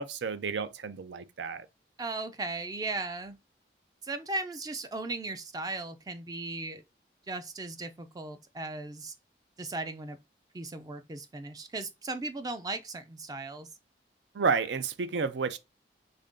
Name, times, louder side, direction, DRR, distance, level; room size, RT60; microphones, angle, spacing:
voice 1, 0.0-1.7 14.3-15.6, right 5 dB, 90° right, 0.5 m, -31 dB
voice 2, 2.0-3.4 4.1-6.8 7.3-9.1 9.6-10.2 10.5-13.7, right 2 dB, 20° right, 0.3 m, -37 dB
3.2 x 2.6 x 3.6 m
head